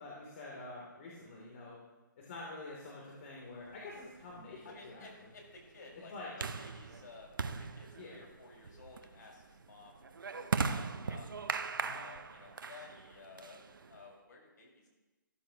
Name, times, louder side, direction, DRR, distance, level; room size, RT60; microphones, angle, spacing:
voice 1, 0.0-1.8 2.2-5.1 6.1-6.3 8.0-8.2 11.8-12.0, left 2 dB, 40° left, -4 dB, 3.0 m, -47 dB
sound 1, 3.7-14.1, right 5 dB, 75° right, 0.8 m, -40 dB
voice 2, 4.6-10.0 10.3-11.4 11.8-14.9, left 3 dB, 60° left, -1 dB, 5.2 m, -54 dB
15.0 x 13.5 x 2.9 m, 1.2 s
hypercardioid pair, 155°, 11 cm